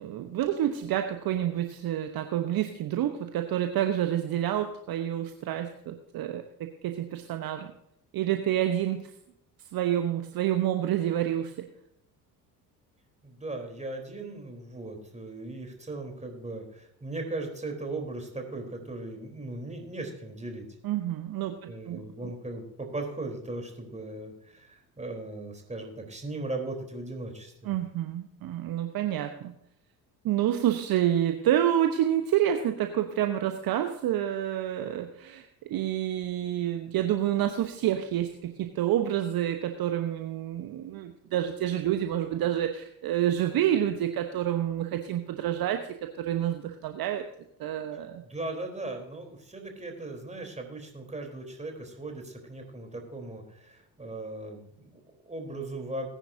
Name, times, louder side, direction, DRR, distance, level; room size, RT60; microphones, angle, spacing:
voice 1, 0.0-7.7 8.1-9.1 9.7-11.7 20.8-22.3 27.6-29.5 30.2-45.8 46.2-47.2 47.6-48.2, right 11 dB, 45° right, 6 dB, 1.1 m, -28 dB
voice 2, 13.2-20.6 21.7-27.7 48.2-56.1, right 2 dB, 15° right, 3 dB, 3.9 m, -38 dB
19.0 x 10.0 x 2.8 m, 0.79 s
figure-of-eight pair, 60°, 49 cm